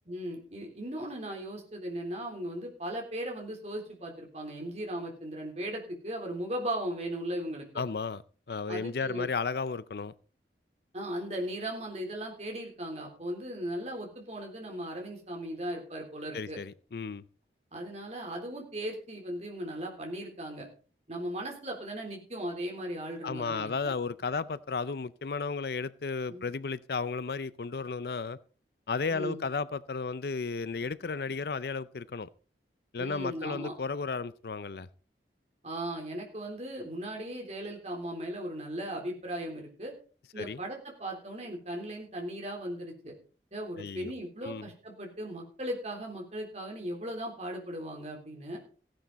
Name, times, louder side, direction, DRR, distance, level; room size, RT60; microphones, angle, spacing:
voice 1, 0.1-7.8 8.7-9.3 10.9-16.6 17.7-20.7 21.1-23.9 26.3-26.4 29.1-29.4 33.0-33.7 35.6-39.9 40.3-43.1 43.5-48.6, right 1 dB, 40° right, 3.6 m, -37 dB
voice 2, 7.8-8.2 8.5-10.1 16.3-17.2 23.2-28.4 28.9-32.3 32.9-34.9 40.4-40.6 43.8-44.1 44.4-44.7, left 4 dB, 65° left, 0.5 m, -34 dB
15.5 x 10.0 x 4.1 m
head